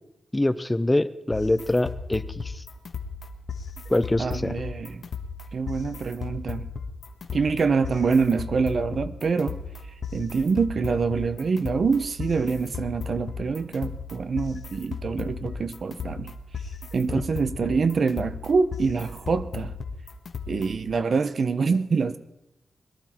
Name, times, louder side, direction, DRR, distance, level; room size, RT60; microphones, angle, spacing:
voice 1, 0.3-2.6 3.9-4.6, left 1 dB, 15° left, 14 dB, 0.6 m, -24 dB
sound 1, 1.3-20.9, left 5 dB, 65° left, 1.4 m, -36 dB
voice 2, 4.2-5.0 5.5-6.7 7.3-9.6 10.1-16.3 16.9-19.8 20.5-22.2, right 5 dB, 60° right, 12 dB, 0.8 m, -25 dB
22.0 x 12.5 x 4.4 m, 0.89 s
wide cardioid pair, 105°, 0 cm